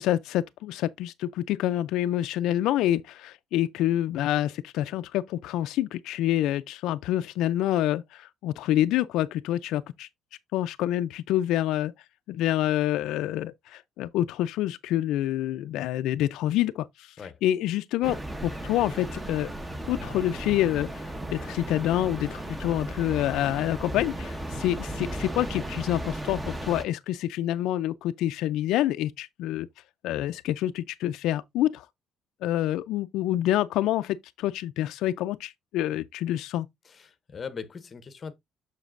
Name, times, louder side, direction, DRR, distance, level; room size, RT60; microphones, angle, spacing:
voice 1, 0.0-10.1 10.5-11.9 12.3-17.1 17.4-18.2 18.4-19.5 19.9-21.0 21.3-29.7 30.0-31.9 32.4-36.7, left 13 dB, 75° left, 0.3 m, -27 dB
sound 1, 18.0-26.8, right 1 dB, 10° right, 0.8 m, -35 dB
voice 2, 36.8-38.3, left 6 dB, 30° left, 0.7 m, -40 dB
7.1 x 6.5 x 2.5 m
cardioid pair, 145°, 0 cm